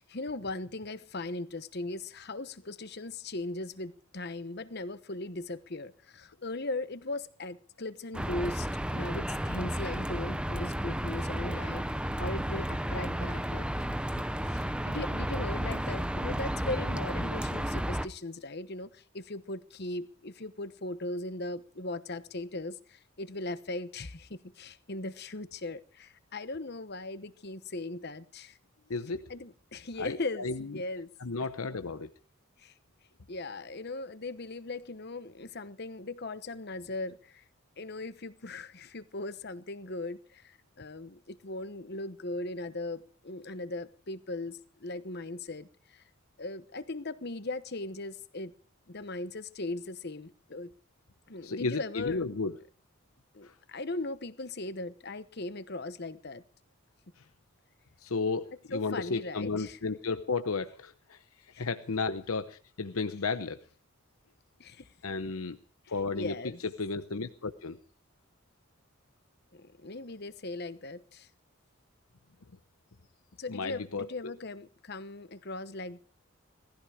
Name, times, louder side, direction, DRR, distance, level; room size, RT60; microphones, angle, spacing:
voice 1, 0.0-13.9 14.2-28.6 29.3-30.5 30.7-31.1 31.6-31.7 32.6-32.7 33.3-37.4 37.8-46.0 46.4-48.5 48.9-50.7 51.3-52.2 53.3-56.4 58.7-59.8 61.5-61.6 64.6-64.9 66.1-66.6 69.5-71.3 73.4-76.0, left 2 dB, 50° left, 1.1 m, -39 dB
sound 1, 8.1-18.1, equal, 5° right, 0.7 m, -32 dB
voice 2, 28.9-29.2 30.0-30.8 31.2-32.1 51.4-52.5 53.4-53.5 57.2-57.3 58.0-61.2 61.6-62.4 62.8-63.6 65.0-65.6 65.9-66.4 66.8-67.8 73.5-74.3, left 4 dB, 85° left, 0.9 m, -33 dB
18.5 x 14.5 x 5.0 m
head